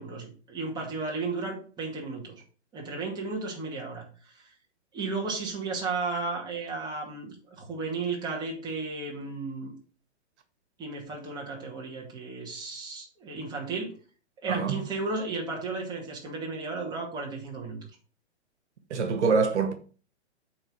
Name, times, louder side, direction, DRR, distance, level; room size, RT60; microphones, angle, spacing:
voice 1, 0.0-2.4 2.7-4.0 4.4-4.5 4.9-9.7 10.8-13.9 14.4-17.8, right 3 dB, 10° right, 2.2 m, -34 dB
voice 2, 14.5-14.8 18.9-19.7, right 5 dB, 70° right, 1.6 m, -25 dB
8.8 x 3.9 x 6.3 m
hypercardioid pair, 155°, 35 cm